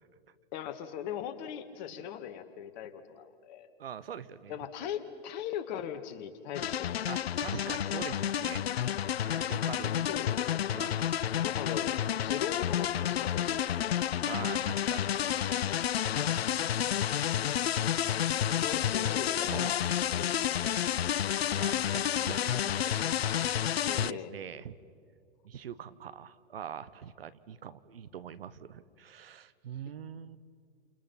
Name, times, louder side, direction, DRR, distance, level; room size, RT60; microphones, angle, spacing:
voice 1, 0.5-3.7 4.5-7.1 9.7-10.6 11.3-14.0 16.9-17.0 18.5-20.3 20.6-20.7 23.9-24.3, left 9 dB, 45° left, 8 dB, 2.2 m, -40 dB
voice 2, 3.8-4.6 7.1-8.7 9.2-10.1 10.7-11.0 14.1-15.1 16.0-16.5 18.4-18.6 19.5-19.7 21.5-23.4 23.9-24.8 25.4-30.4, right 8 dB, 70° right, 15 dB, 1.2 m, -43 dB
sound 1, 6.5-24.1, left 10 dB, 75° left, 0.6 m, -30 dB
30.0 x 28.5 x 5.9 m, 2.3 s
hypercardioid pair, 115°, 31 cm